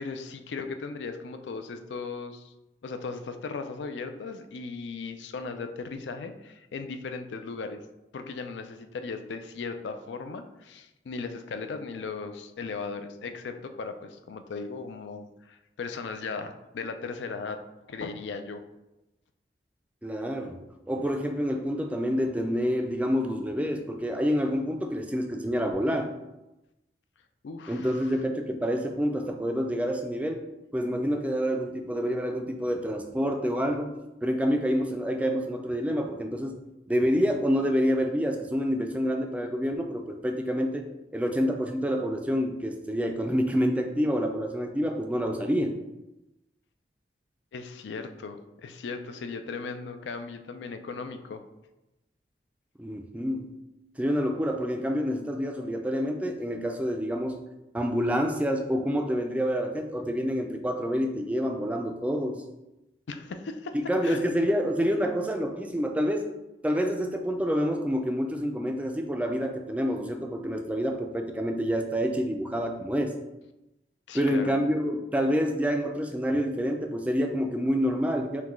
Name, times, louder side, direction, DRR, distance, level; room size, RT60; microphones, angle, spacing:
voice 1, 0.0-2.5 2.8-7.8 8.1-17.6 17.9-18.6 27.4-28.1 47.5-51.4 63.1-63.8 64.0-64.2 74.1-74.6, left 4 dB, 85° left, 8 dB, 0.4 m, -37 dB
voice 2, 20.0-20.6 20.9-26.1 27.7-30.5 30.7-33.9 34.2-36.6 36.9-40.8 41.1-45.8 52.8-53.5 54.0-57.4 57.7-62.4 63.7-66.3 66.6-73.1 74.1-78.4, equal, 10° right, 4 dB, 0.3 m, -27 dB
5.8 x 2.2 x 3.1 m, 0.95 s
head